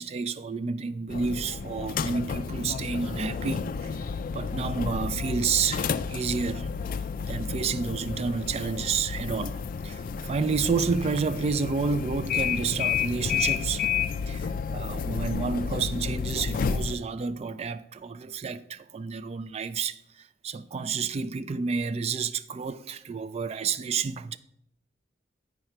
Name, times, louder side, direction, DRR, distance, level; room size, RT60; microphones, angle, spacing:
voice 1, 0.0-4.0 4.3-6.7 7.3-13.9 14.3-24.4, right 5 dB, 35° right, 0.3 m, -30 dB
sound 1, 1.1-17.0, left 6 dB, 50° left, 0.3 m, -31 dB
9.2 x 4.8 x 4.3 m
head